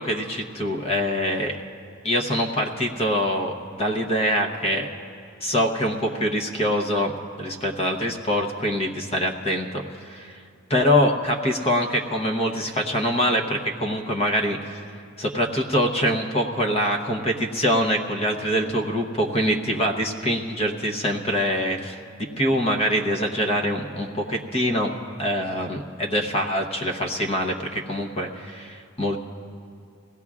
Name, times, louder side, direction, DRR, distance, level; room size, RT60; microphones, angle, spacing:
voice 1, 0.0-1.6 2.0-4.9 5.4-7.1 7.4-10.4 10.7-14.8 15.2-24.9 25.2-29.2, equal, 30° left, 3 dB, 0.9 m, -24 dB
22.5 x 16.5 x 2.4 m, 2.4 s
head